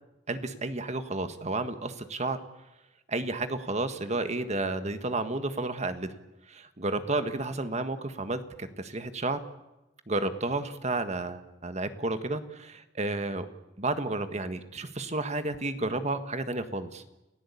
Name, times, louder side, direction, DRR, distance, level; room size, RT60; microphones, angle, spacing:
voice 1, 0.3-2.4 3.1-6.2 6.5-9.4 10.1-13.4 13.8-17.0, right 2 dB, 40° right, 9 dB, 1.7 m, -31 dB
29.5 x 16.5 x 8.6 m, 0.97 s
head